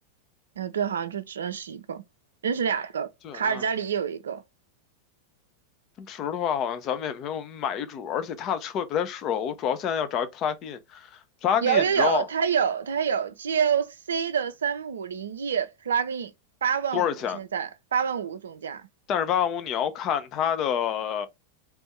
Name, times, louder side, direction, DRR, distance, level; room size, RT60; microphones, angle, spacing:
voice 1, 0.6-2.0 2.4-4.4 11.6-16.3 16.6-17.1 17.3-18.9, right 7 dB, 65° right, 0.5 m, -27 dB
voice 2, 3.2-3.6 6.0-12.3 16.9-17.4 19.1-21.3, left 8 dB, 35° left, 0.6 m, -28 dB
3.4 x 2.6 x 4.3 m
figure-of-eight pair, 90°, 0 cm